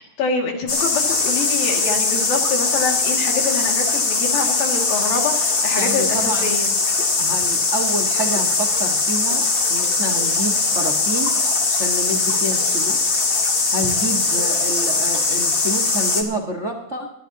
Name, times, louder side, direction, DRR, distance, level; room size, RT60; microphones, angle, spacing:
voice 1, 0.2-6.7, left 4 dB, 75° left, 1 dB, 4.0 m, -25 dB
sound 1, 0.7-16.2, left 3 dB, 40° left, 2.1 m, -20 dB
voice 2, 5.8-6.5 7.2-9.4 9.7-11.4 11.7-13.0 13.7-17.1, right 1 dB, 60° right, 2 dB, 0.7 m, -28 dB
26.5 x 12.5 x 2.8 m, 0.83 s
omnidirectional pair, 4.2 m